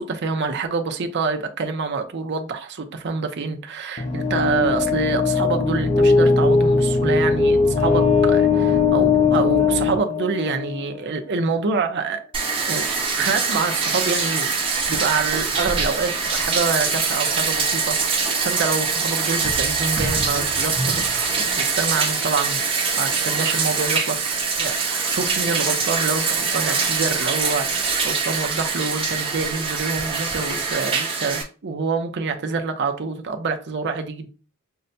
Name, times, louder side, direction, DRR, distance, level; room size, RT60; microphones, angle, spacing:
voice 1, 0.0-12.2 12.7-12.9 13.1-14.5 14.9-22.6 22.9-34.3, right 4 dB, 55° right, 0.6 m, -26 dB
sound 1, 4.0-10.9, left 4 dB, 30° left, 0.4 m, -19 dB
Bathtub (filling or washing), 12.3-31.4, right 5 dB, 25° right, 0.8 m, -23 dB
5.4 x 2.2 x 2.6 m
head